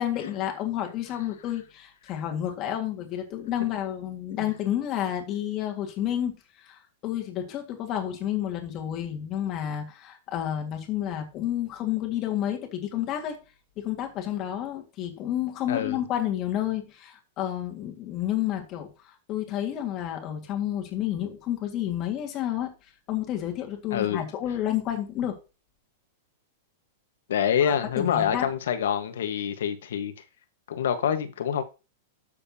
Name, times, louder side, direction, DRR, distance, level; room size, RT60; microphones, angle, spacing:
voice 1, 0.0-6.3 6.6-13.3 13.8-18.9 19.3-22.7 23.1-25.4 27.6-28.5, left 11 dB, 30° left, 1.9 m, -30 dB
voice 2, 15.7-16.0 23.9-24.2 27.3-30.1 30.7-31.6, left 8 dB, 85° left, 1.4 m, -26 dB
12.0 x 6.8 x 2.8 m
supercardioid pair, 160°, 0 cm